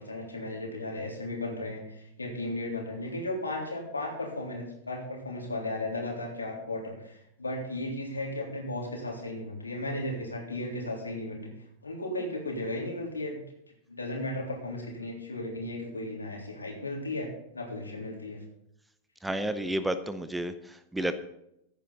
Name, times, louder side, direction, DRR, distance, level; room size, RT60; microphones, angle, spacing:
voice 1, 0.0-11.5 11.8-13.4 13.9-17.3 17.5-18.4, left 1 dB, 80° left, -1 dB, 3.5 m, -35 dB
voice 2, 19.2-21.2, right 1 dB, 5° right, 12 dB, 0.7 m, -31 dB
15.5 x 10.0 x 4.0 m, 0.80 s
figure-of-eight pair, 90°, 0 cm